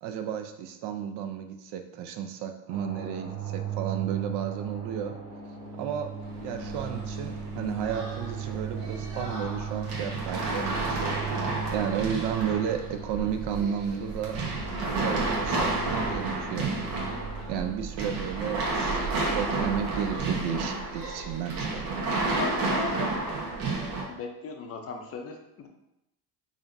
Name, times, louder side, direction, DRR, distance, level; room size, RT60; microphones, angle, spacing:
voice 1, 0.0-5.2 5.8-6.1 6.4-11.3 11.7-14.4 15.0-16.7 17.5-21.8, right 8 dB, 60° right, 7 dB, 0.5 m, -33 dB
sound 1, 2.7-17.7, right 6 dB, 25° right, 1.0 m, -38 dB
sound 2, 6.2-24.0, right 3 dB, 75° right, 1.2 m, -31 dB
voice 2, 22.3-23.1 24.1-25.7, left 4 dB, 30° left, 4 dB, 0.4 m, -36 dB
4.9 x 2.6 x 2.5 m, 0.87 s
cardioid pair, 135°, 48 cm